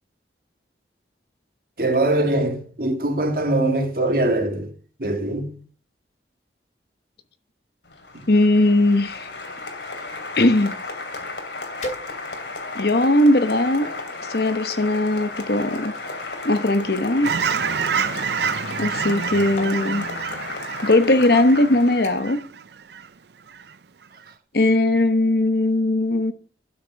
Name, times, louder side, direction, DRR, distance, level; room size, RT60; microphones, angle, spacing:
voice 1, 1.8-4.7 5.0-5.6 8.1-8.2, right 2 dB, 55° right, 2.2 m, -22 dB
Applause, 7.9-22.3, left 3 dB, 85° left, 2.7 m, -34 dB
voice 2, 8.3-9.3 10.4-10.7 12.7-13.9 14.3-15.9 16.4-17.3 18.8-20.1 20.8-22.4 24.5-26.3, left 1 dB, 65° left, 1.1 m, -19 dB
sound 1, 11.8-12.6 13.2-14.1 15.0-17.9 19.0-19.2 19.6-19.9 20.8-20.9 21.3-21.6 22.0-22.4 22.8-23.1 23.5-23.6, left 1 dB, 40° left, 2.6 m, -39 dB
Fowl / Chirp tweet, 17.2-23.1 23.5-23.7, right 7 dB, 70° right, 0.5 m, -28 dB
12.0 x 6.3 x 6.3 m
head